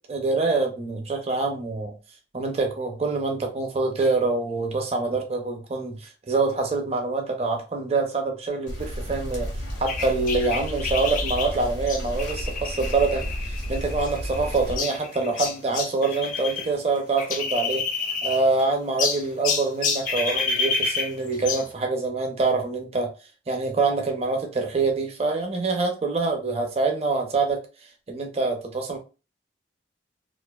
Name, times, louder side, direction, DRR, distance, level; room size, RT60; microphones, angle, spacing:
voice 1, 0.1-1.9 2.3-9.5 9.8-17.8 18.2-23.1 23.5-27.6 28.1-29.0, right 3 dB, 35° right, 3 dB, 0.5 m, -25 dB
sound 1, 8.7-14.8, equal, 90° left, 1.2 m, -32 dB
sound 2, 9.9-16.7 17.0-18.6 19.0-21.7, left 5 dB, 45° left, 0.4 m, -29 dB
2.5 x 2.4 x 2.3 m, 0.32 s
head